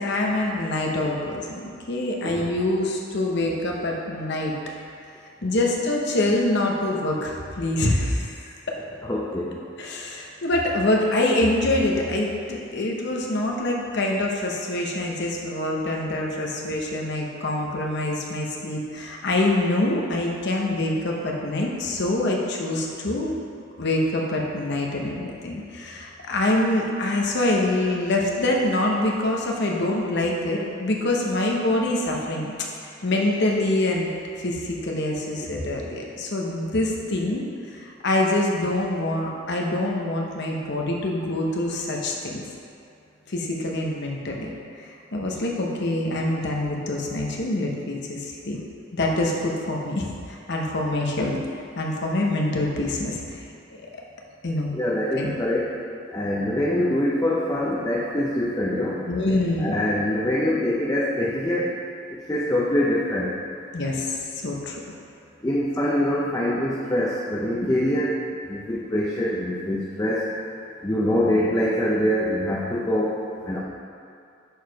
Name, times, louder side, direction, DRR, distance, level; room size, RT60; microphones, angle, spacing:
voice 1, 0.0-4.5 5.4-8.7 9.8-23.3 23.8-32.5 33.0-34.1 34.4-37.4 37.7-42.4 43.3-44.5 44.8-48.6 48.9-51.4 51.8-53.4 54.4-54.7 55.2-55.3 59.1-59.8 63.7-64.8, left 1 dB, 60° left, -1 dB, 0.9 m, -25 dB
voice 2, 9.0-9.6 54.7-55.8 56.1-59.1 59.6-61.8 62.1-63.4 65.4-70.4 70.8-73.6, left 1 dB, 15° left, -5 dB, 0.6 m, -24 dB
6.5 x 4.8 x 4.7 m, 2.5 s
head